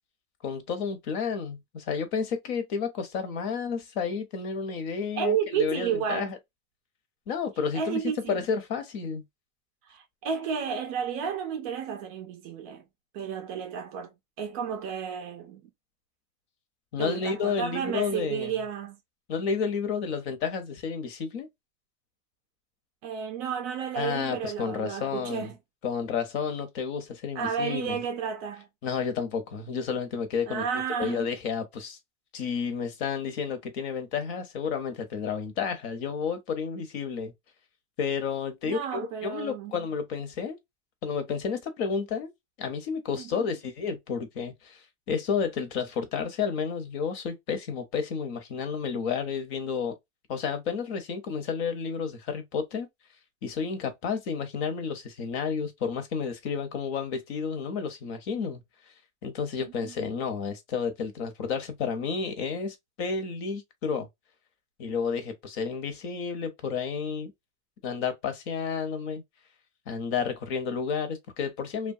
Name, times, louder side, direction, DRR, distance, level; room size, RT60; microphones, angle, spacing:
voice 1, 0.4-6.4 7.3-8.0 8.3-9.2 16.9-18.5 19.3-21.5 24.0-25.5 25.8-28.0 28.8-30.6 31.0-32.0 32.3-37.3 38.0-40.6 41.0-42.3 42.6-44.8 45.1-49.9 50.3-52.9 53.4-58.6 59.2-64.1 64.8-67.3 67.8-69.2 69.9-71.9, left 6 dB, 55° left, 0.9 m, -31 dB
voice 2, 5.2-6.3 7.7-8.4 9.9-12.9 13.1-15.6 17.0-19.0 23.0-25.6 27.3-28.7 30.5-31.2 38.6-39.8 43.2-43.5 59.6-59.9, right 7 dB, 30° right, 0.4 m, -32 dB
3.0 x 2.3 x 2.6 m
supercardioid pair, 165°, 39 cm